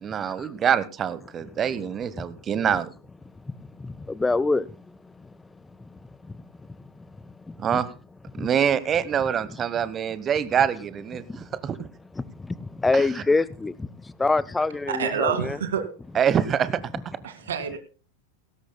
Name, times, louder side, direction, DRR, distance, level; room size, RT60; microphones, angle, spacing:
voice 1, 0.0-2.9 7.6-7.9 8.4-11.8 12.9-13.2 16.1-16.8, right 8 dB, 25° right, 1.1 m, -25 dB
voice 2, 3.8-4.7 7.5-7.8 8.4-8.5 11.3-11.4 12.4-13.9 14.2-15.6, left 3 dB, 10° left, 0.6 m, -25 dB
voice 3, 14.9-15.8 17.2-17.8, right 7 dB, 65° right, 2.1 m, -27 dB
18.5 x 16.5 x 2.2 m
figure-of-eight pair, 90°, 0 cm